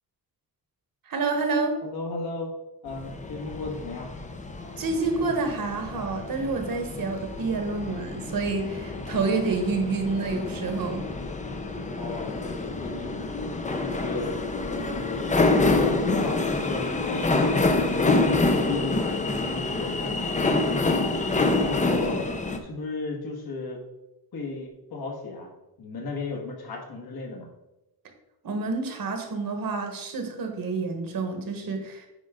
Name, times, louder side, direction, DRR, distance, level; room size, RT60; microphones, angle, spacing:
voice 1, 1.1-1.8 4.8-11.1 28.4-32.1, right 4 dB, 55° right, 5 dB, 1.4 m, -28 dB
voice 2, 1.8-2.5 2.8-4.1 12.0-13.3 13.8-14.3 14.7-18.2 18.6-21.2 21.6-22.3 22.6-23.8 24.3-25.5 25.8-27.5, left 3 dB, 65° left, 0 dB, 1.9 m, -35 dB
sound 1, 2.9-22.6, left 3 dB, 20° left, 0.6 m, -27 dB
9.4 x 5.1 x 3.8 m, 0.97 s
wide cardioid pair, 160°, 40 cm